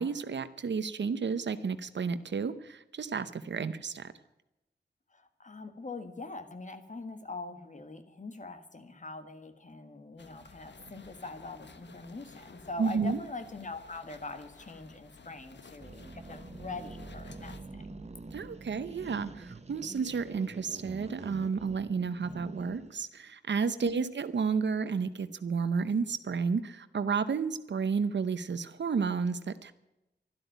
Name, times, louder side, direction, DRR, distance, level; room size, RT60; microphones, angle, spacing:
voice 1, 0.0-4.1 12.8-13.2 18.3-29.7, right 5 dB, 85° right, 12 dB, 0.8 m, -31 dB
voice 2, 5.1-17.9 23.8-24.1, left 3 dB, 45° left, 9 dB, 1.7 m, -43 dB
sound 1, 10.2-17.6, left 4 dB, 85° left, 1.4 m, -54 dB
sound 2, 15.8-23.0, right 3 dB, 40° right, 1.1 m, -46 dB
12.5 x 12.0 x 9.0 m, 0.94 s
wide cardioid pair, 100°, 18 cm